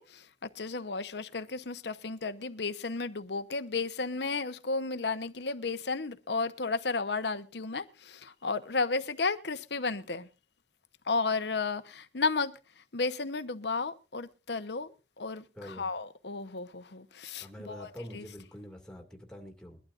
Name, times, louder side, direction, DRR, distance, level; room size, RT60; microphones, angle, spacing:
voice 1, 0.0-10.3 11.1-18.2, left 4 dB, 70° left, 1.0 m, -33 dB
voice 2, 15.5-15.9 17.4-19.8, equal, 5° left, 2.3 m, -45 dB
22.5 x 12.0 x 2.5 m
head